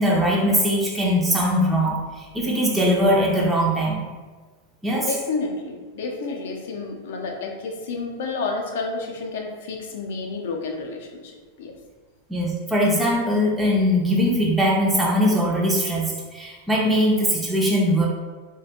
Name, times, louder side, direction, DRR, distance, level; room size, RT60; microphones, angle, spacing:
voice 1, 0.0-4.1 4.8-5.1 12.3-18.1, equal, 5° right, -4 dB, 0.3 m, -21 dB
voice 2, 4.9-11.3 11.6-11.7, left 3 dB, 75° left, 2 dB, 0.4 m, -30 dB
2.4 x 2.1 x 2.8 m, 1.4 s
supercardioid pair, 155°, 0 cm